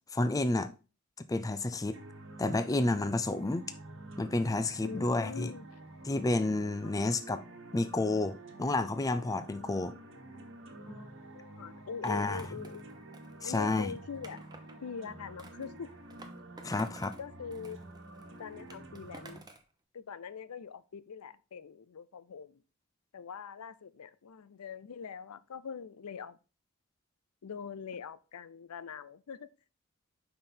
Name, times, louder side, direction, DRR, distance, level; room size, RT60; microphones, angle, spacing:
voice 1, 0.1-0.7 1.3-2.0 2.4-3.7 4.2-5.5 6.1-7.4 7.7-9.9 12.0-12.4 13.4-13.9 16.6-17.1, left 2 dB, 15° left, 0.4 m, -30 dB
sound 1, 1.9-19.4, right 2 dB, 60° right, 1.3 m, -49 dB
voice 2, 4.8-5.8 10.9-12.9 13.4-14.5 14.8-15.9 17.2-17.8 18.4-19.5 19.9-22.6 23.1-26.4 27.4-29.5, left 6 dB, 80° left, 0.5 m, -43 dB
Skateboard, 12.0-14.8 15.4-17.2 17.5-19.7, right 2 dB, 20° right, 0.8 m, -53 dB
5.9 x 5.3 x 4.3 m
head